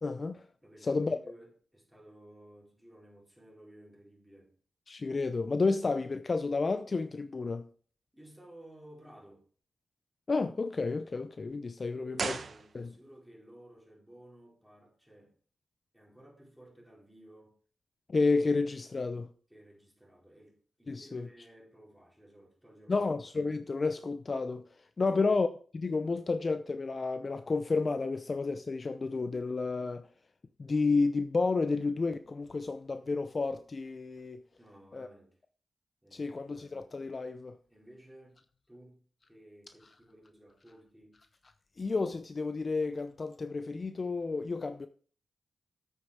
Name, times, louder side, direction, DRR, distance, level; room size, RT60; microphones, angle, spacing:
voice 1, 0.0-0.5 0.8-1.2 4.9-7.7 10.3-12.4 12.7-12.9 18.1-19.3 20.9-21.3 22.9-25.5 25.7-30.1 30.6-34.4 34.9-35.1 36.1-37.6 41.8-44.9, left 3 dB, 40° left, 0.6 m, -31 dB
voice 2, 0.6-4.5 8.1-9.4 11.9-15.3 15.9-17.5 19.5-23.1 25.0-25.2 34.6-35.4 36.0-36.5 37.7-38.4 38.7-41.2, right 1 dB, ahead, 4.6 m, -56 dB
sound 1, 12.1-13.2 13.5-13.6, right 5 dB, 60° right, 1.0 m, -37 dB
8.3 x 8.2 x 4.9 m
cardioid pair, 70°, 0 cm